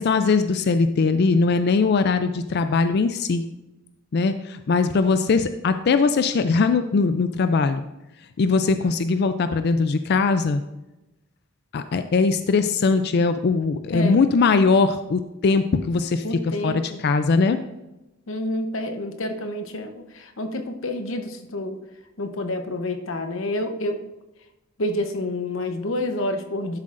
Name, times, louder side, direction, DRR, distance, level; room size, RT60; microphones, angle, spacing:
voice 1, 0.0-3.4 4.1-7.8 8.4-10.6 11.7-17.6, left 4 dB, 55° left, 10 dB, 0.4 m, -21 dB
voice 2, 16.2-17.0 18.3-21.8 22.2-24.0 24.8-26.8, left 1 dB, 75° left, 7 dB, 0.9 m, -28 dB
11.5 x 7.4 x 2.5 m, 0.97 s
head